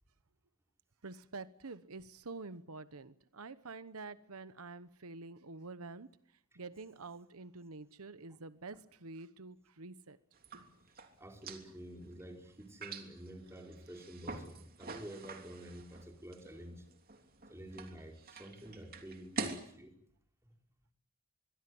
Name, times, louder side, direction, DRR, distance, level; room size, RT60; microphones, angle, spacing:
voice 1, 1.0-6.1 6.6-10.2, right 3 dB, 90° right, 14 dB, 1.1 m, -48 dB
sound 1, 10.3-19.7, right 3 dB, 45° right, 3.0 m, -46 dB
voice 2, 11.2-16.8 17.5-19.9, right 1 dB, 10° right, 3 dB, 4.8 m, -49 dB
24.5 x 23.0 x 7.9 m, 0.67 s
head